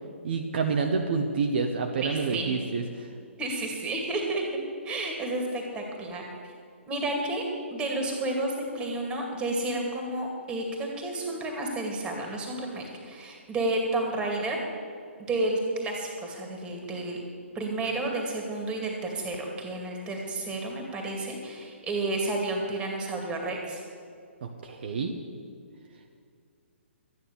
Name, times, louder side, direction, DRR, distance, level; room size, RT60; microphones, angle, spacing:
voice 1, 0.2-3.1 24.4-25.1, right 4 dB, 50° right, 3 dB, 1.0 m, -28 dB
voice 2, 2.0-2.6 3.4-4.4 4.8-6.2 6.9-7.4 7.7-14.6 15.3-17.2 17.5-23.8, right 2 dB, 15° right, 1 dB, 2.3 m, -31 dB
12.5 x 9.6 x 6.8 m, 2.3 s
figure-of-eight pair, 130°, 7 cm